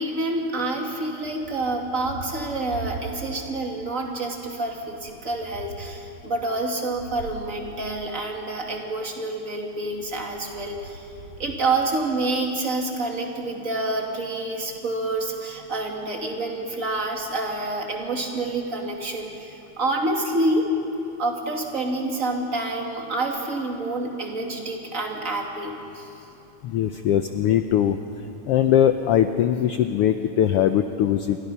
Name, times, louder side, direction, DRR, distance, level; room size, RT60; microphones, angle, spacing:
voice 1, 0.0-11.1 11.4-20.7 21.2-26.1, right 2 dB, 30° right, 1 dB, 2.6 m, -28 dB
Thunder, 1.2-3.6 4.0-8.8 9.8-12.5, right 4 dB, 90° right, 2.8 m, -42 dB
voice 2, 26.6-28.0 28.5-31.4, left 10 dB, 80° left, 8 dB, 1.3 m, -21 dB
29.0 x 23.5 x 5.6 m, 2.9 s
omnidirectional pair, 3.4 m